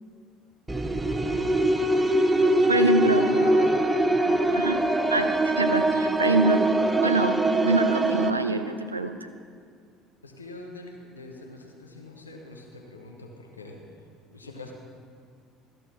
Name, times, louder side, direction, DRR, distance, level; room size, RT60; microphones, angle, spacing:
sound 1, 0.7-8.3, right 1 dB, 10° right, 0.7 m, -23 dB
voice 1, 1.0-1.7 2.3-3.7 4.1-4.4 10.2-13.8 14.3-14.7, left 2 dB, 90° left, 1 dB, 1.1 m, -41 dB
voice 2, 2.7-3.3 4.5-4.8 5.1-6.6 7.0-9.3, right 2 dB, 90° right, 8 dB, 0.5 m, -25 dB
13.5 x 6.7 x 6.0 m, 2.2 s
figure-of-eight pair, 60°, 0 cm